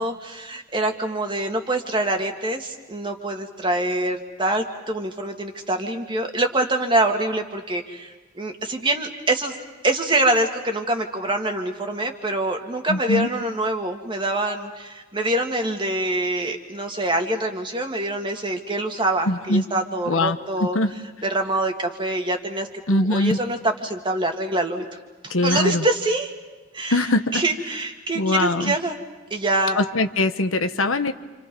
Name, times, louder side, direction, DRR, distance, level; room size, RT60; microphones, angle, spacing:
voice 1, 0.0-9.6 9.8-20.8 21.3-24.8 25.2-26.3 26.7-27.0 27.3-29.0 29.3-29.8, right 1 dB, 25° right, 3 dB, 2.2 m, -25 dB
voice 2, 12.9-13.3 19.3-19.6 20.1-20.9 22.9-23.4 25.3-25.8 26.9-27.4 28.1-28.7 29.8-31.1, left 2 dB, 75° left, 8 dB, 1.3 m, -22 dB
29.0 x 28.5 x 5.5 m, 1.3 s
head